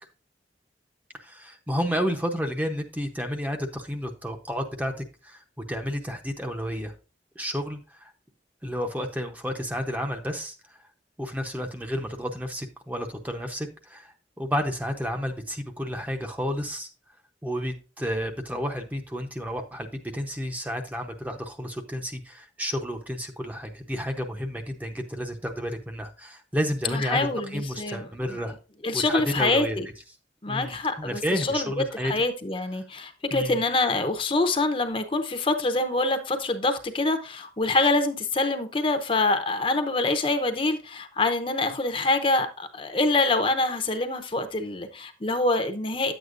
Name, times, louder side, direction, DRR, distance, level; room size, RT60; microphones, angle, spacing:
voice 1, 1.2-6.9 7.4-8.1 8.6-10.8 11.2-16.9 17.4-28.5 28.9-29.8 30.5-32.1 33.3-33.6, equal, 10° right, 0.7 m, -31 dB
voice 2, 26.8-28.4 28.8-29.9 30.4-46.1, left 2 dB, 30° left, 0.8 m, -25 dB
10.0 x 8.1 x 2.5 m
head